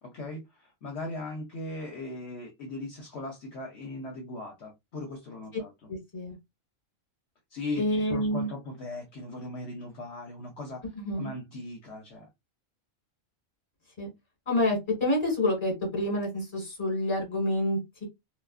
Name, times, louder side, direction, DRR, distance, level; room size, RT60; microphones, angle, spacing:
voice 1, 0.0-5.7 7.5-10.8 11.2-12.3, left 2 dB, 65° left, 0.9 m, -38 dB
voice 2, 5.9-6.4 7.8-8.5 10.9-11.3 14.0-14.1 14.5-18.0, left 1 dB, 25° left, 1.3 m, -28 dB
2.3 x 2.3 x 2.3 m
omnidirectional pair, 1.3 m